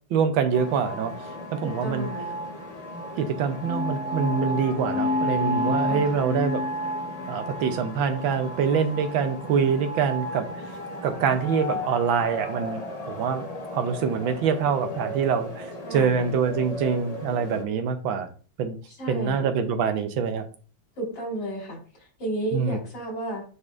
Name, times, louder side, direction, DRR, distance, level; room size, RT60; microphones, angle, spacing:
voice 1, 0.1-1.1 1.5-2.1 3.2-6.6 7.3-10.6 11.0-18.3 18.6-18.8 19.1-20.4 22.5-22.8, right 6 dB, 80° right, 8 dB, 1.5 m, -25 dB
sound 1, 0.5-17.6, right 1 dB, 30° left, 0.8 m, -34 dB
voice 2, 1.6-2.3 5.9-6.2 15.8-16.3 19.0-19.5 21.0-23.4, right 1 dB, 65° left, -5 dB, 4.5 m, -33 dB
sound 2, 3.6-7.4, left 6 dB, 50° left, 1.7 m, -31 dB
9.6 x 4.0 x 2.5 m, 0.40 s
omnidirectional pair, 2.2 m